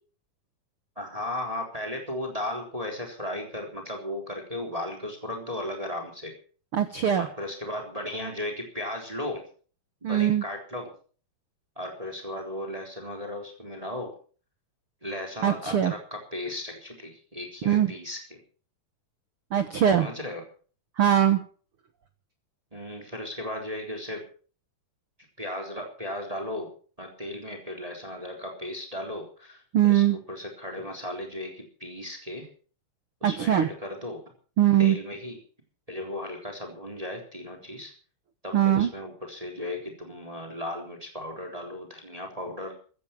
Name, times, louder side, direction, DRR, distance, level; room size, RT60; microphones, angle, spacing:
voice 1, 1.0-6.3 7.2-9.4 10.0-10.9 11.8-14.1 15.0-18.4 20.0-20.4 22.7-24.2 25.4-32.5 33.2-34.2 34.8-35.4 35.9-37.9 38.4-42.8, left 1 dB, 10° right, 2 dB, 3.5 m, -36 dB
voice 2, 6.7-7.3 10.0-10.4 15.4-15.9 17.6-17.9 19.5-20.1 21.0-21.4 29.7-30.2 33.2-33.7 34.6-35.0 38.5-38.9, right 10 dB, 80° right, 9 dB, 1.2 m, -21 dB
15.0 x 14.5 x 6.0 m, 0.42 s
omnidirectional pair, 4.2 m